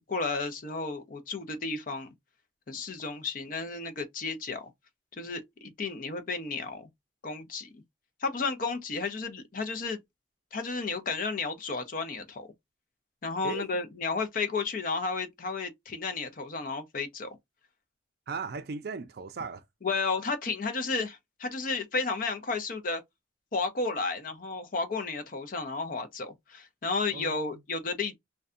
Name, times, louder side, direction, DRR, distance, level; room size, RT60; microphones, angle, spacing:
voice 1, 0.1-2.1 2.7-4.7 5.1-6.9 7.2-7.7 8.2-10.0 10.5-12.5 13.2-17.4 19.8-23.0 23.5-28.2, left 4 dB, 45° left, 0.5 m, -32 dB
voice 2, 18.3-19.6 27.1-27.6, right 4 dB, 55° right, 0.4 m, -37 dB
2.6 x 2.2 x 2.4 m
head